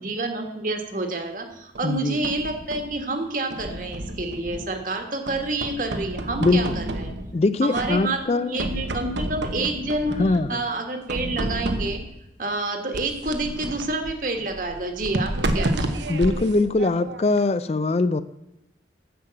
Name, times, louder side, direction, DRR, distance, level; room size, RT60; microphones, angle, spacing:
voice 1, 0.0-7.1 7.6-12.0 12.4-16.1, right 2 dB, 45° right, 5 dB, 1.6 m, -28 dB
voice 2, 1.8-2.2 6.4-6.8 7.3-8.6 10.2-10.6 16.1-18.2, left 3 dB, 35° left, 14 dB, 0.4 m, -22 dB
sound 1, 1.8-3.0 3.5-4.9 5.3-7.4 7.7-8.3 8.6-10.5 11.1-12.2 12.9-17.4, right 1 dB, 80° right, 1.1 m, -30 dB
10.0 x 7.4 x 7.6 m, 0.91 s
head